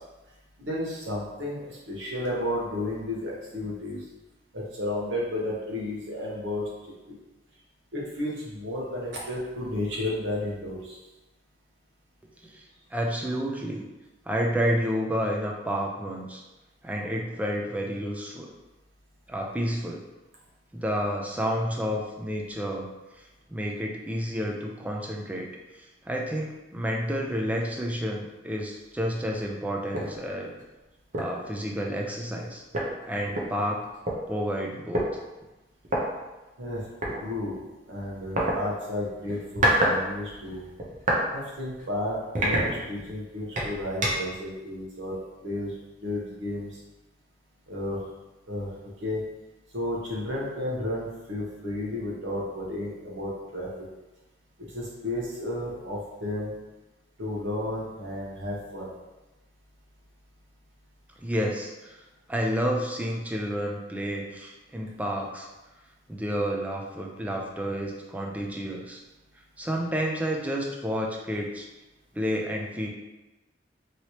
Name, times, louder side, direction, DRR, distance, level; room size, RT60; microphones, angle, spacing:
voice 1, 0.6-4.0 4.5-6.6 7.9-11.0 36.6-36.8 37.2-37.6 37.9-40.6 41.3-45.7 46.0-46.7 47.7-48.0 48.5-48.7 49.0-49.2 49.7-53.9 54.7-56.5 57.2-58.9, left 1 dB, 85° right, -4 dB, 1.0 m, -32 dB
voice 2, 12.4-13.8 14.2-16.4 16.8-18.5 19.3-20.0 20.7-22.9 23.2-23.3 23.5-25.5 25.7-30.5 31.1-32.6 33.0-33.9 34.3-35.1 61.2-65.5 66.1-69.0 69.6-71.7 72.1-72.9, equal, 10° right, -1 dB, 0.4 m, -30 dB
sound 1, 29.9-30.1 30.6-30.7 31.1-31.4 32.4-32.5 32.7-34.2 34.9-35.1 35.8-36.0 37.0-37.2 38.4-38.6 39.3-40.0 40.3-41.2 41.7-41.9 42.3-43.1 43.6-44.3, right 1 dB, 45° right, 0.7 m, -26 dB
3.1 x 2.9 x 2.8 m, 1.1 s
head